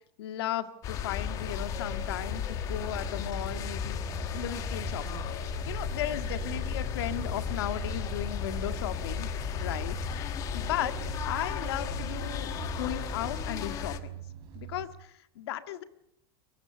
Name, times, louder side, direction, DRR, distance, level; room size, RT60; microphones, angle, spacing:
voice 1, 0.2-4.0 4.3-5.3 5.6-9.3 9.6-10.0 10.2-12.5 12.8-14.2 14.5-15.8, left 12 dB, 90° left, 10 dB, 1.8 m, -36 dB
sound 1, 0.8-14.0, left 9 dB, 25° left, 1.3 m, -35 dB
sound 2, 1.1-13.2, right 6 dB, 15° right, 6.7 m, -43 dB
sound 3, 2.7-14.9, right 12 dB, 40° right, 5.3 m, -44 dB
23.5 x 20.0 x 6.9 m, 0.79 s
supercardioid pair, 180°, 13 cm